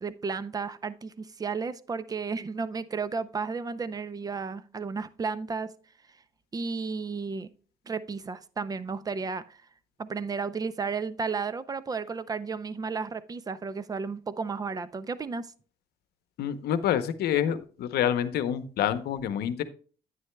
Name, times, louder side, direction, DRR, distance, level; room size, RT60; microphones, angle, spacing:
voice 1, 0.0-5.7 6.5-7.5 7.9-9.6 10.0-15.5, right 5 dB, 20° right, 0.5 m, -33 dB
voice 2, 16.4-19.6, left 10 dB, 70° left, 0.8 m, -27 dB
9.7 x 9.2 x 2.2 m
cardioid pair, 110°, 17 cm